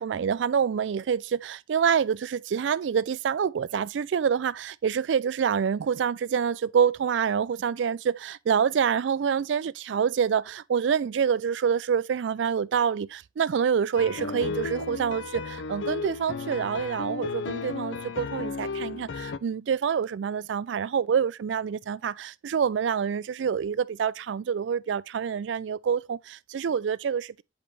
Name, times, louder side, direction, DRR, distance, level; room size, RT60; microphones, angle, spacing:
voice 1, 0.0-27.4, right 7 dB, 75° right, 0.4 m, -27 dB
sound 1, 14.0-19.4, left 4 dB, 80° left, 0.5 m, -34 dB
8.0 x 5.3 x 3.1 m
head